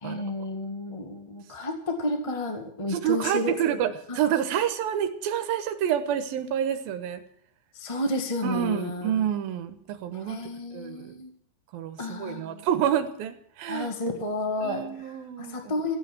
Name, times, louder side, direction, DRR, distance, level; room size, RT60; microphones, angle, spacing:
voice 1, 0.0-3.8 4.1-4.2 4.5-4.6 7.7-9.1 10.2-11.3 12.0-12.6 13.7-15.1 15.4-16.0, left 2 dB, 30° left, 5 dB, 0.6 m, -31 dB
voice 2, 2.9-7.2 8.4-10.4 10.7-11.2 11.7-13.9 14.6-15.7, right 10 dB, 80° right, 9 dB, 3.0 m, -28 dB
14.5 x 8.7 x 9.2 m, 0.64 s
omnidirectional pair, 4.2 m